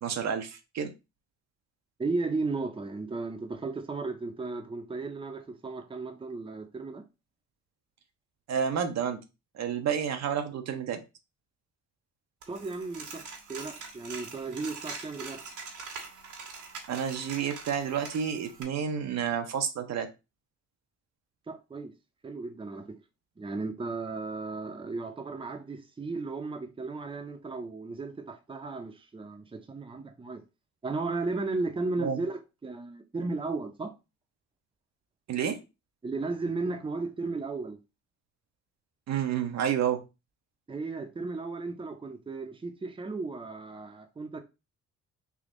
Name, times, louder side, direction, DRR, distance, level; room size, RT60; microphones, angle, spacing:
voice 1, 0.0-0.9 8.5-9.2 9.5-11.0 16.9-20.1 32.0-32.2 35.3-35.6 39.1-40.0, right 8 dB, 60° right, 0.8 m, -30 dB
voice 2, 2.0-7.0 12.5-13.2 13.5-15.4 21.5-21.9 22.2-23.0 23.4-30.4 30.8-33.9 36.0-37.8 40.7-44.4, right 3 dB, 15° right, 0.7 m, -35 dB
Coin (dropping), 12.4-18.6, right 4 dB, 80° right, 1.3 m, -43 dB
3.5 x 2.7 x 3.8 m
cardioid pair, 90°, 30 cm